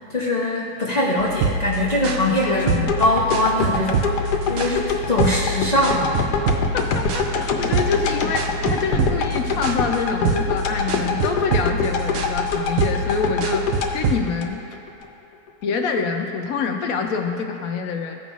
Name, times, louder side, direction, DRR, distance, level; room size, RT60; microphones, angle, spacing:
voice 1, 0.0-6.2, left 1 dB, 45° left, -4 dB, 0.5 m, -22 dB
sound 1, 1.2-14.2, right 3 dB, 65° right, 0.8 m, -26 dB
voice 2, 2.4-2.9 4.8-4.9 6.7-14.6 15.6-18.2, left 5 dB, 70° left, 4 dB, 1.0 m, -26 dB
sound 2, 2.9-15.1 15.5-15.6, left 4 dB, 85° left, 1.2 m, -25 dB
14.5 x 5.4 x 2.4 m, 2.7 s
omnidirectional pair, 1.7 m